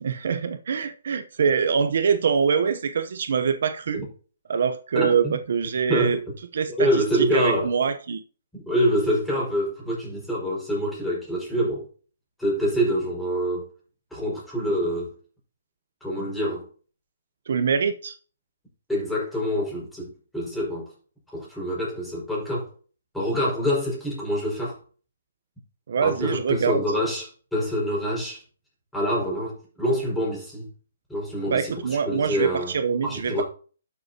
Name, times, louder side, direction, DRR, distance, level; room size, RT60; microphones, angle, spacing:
voice 1, 0.0-4.0 4.5-6.2 6.5-8.2 17.5-18.2 25.9-26.8 31.5-33.4, right 6 dB, 65° right, 0.8 m, -24 dB
voice 2, 5.0-5.4 5.9-6.2 6.8-7.7 8.5-11.9 12.4-13.7 14.1-15.1 16.0-16.7 18.9-20.9 21.3-22.7 23.1-24.8 26.0-28.4 28.9-30.7 31.1-32.7 33.0-33.4, equal, ahead, 5.4 m, -26 dB
12.0 x 6.8 x 2.9 m
hypercardioid pair, 155°, 0 cm